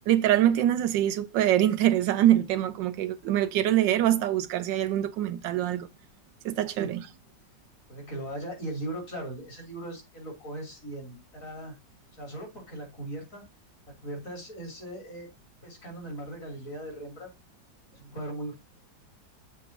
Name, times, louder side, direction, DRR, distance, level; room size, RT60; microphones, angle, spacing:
voice 1, 0.1-5.9 6.4-7.0, right 12 dB, 85° right, 1.3 m, -24 dB
voice 2, 7.9-11.8 12.1-13.4 13.9-15.3 15.6-17.3 17.9-18.6, right 1 dB, 45° left, 3.7 m, -38 dB
7.0 x 3.6 x 5.8 m
omnidirectional pair, 1.9 m